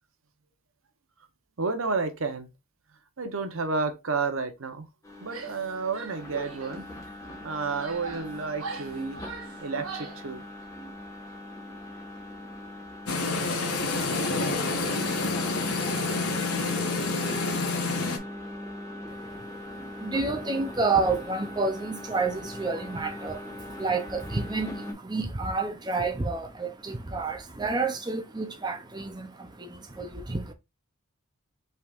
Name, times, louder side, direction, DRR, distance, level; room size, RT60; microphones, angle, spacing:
voice 1, 1.6-2.5 3.2-4.9 5.2-6.9 7.4-9.2 9.6-10.4, right 4 dB, 70° right, 0.9 m, -31 dB
sound 1, 5.0-24.9, left 1 dB, 15° left, 1.3 m, -41 dB
Female speech woman speaking / Yell, 5.2-5.7 5.9-6.8 7.4-10.3, right 4 dB, 85° right, 1.3 m, -41 dB
sound 2, 13.1-18.2, left 3 dB, 90° left, 1.1 m, -28 dB
voice 2, 19.1-30.5, right 3 dB, 20° right, 0.5 m, -30 dB
5.4 x 3.5 x 2.4 m
head